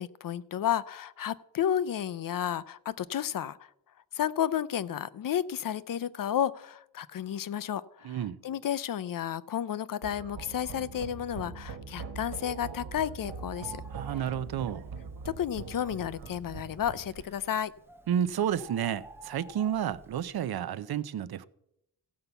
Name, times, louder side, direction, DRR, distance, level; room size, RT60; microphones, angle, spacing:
voice 1, 0.0-3.7 4.1-13.8 15.4-17.7, left 10 dB, 60° left, 0.5 m, -32 dB
voice 2, 8.0-8.4 13.9-15.0 18.1-21.5, right 9 dB, 70° right, 0.7 m, -31 dB
sound 1, 10.0-17.2, right 5 dB, 90° right, 1.5 m, -42 dB
Bird, 13.2-20.4, right 2 dB, 5° right, 1.2 m, -53 dB
15.5 x 5.6 x 8.0 m
wide cardioid pair, 150°, 38 cm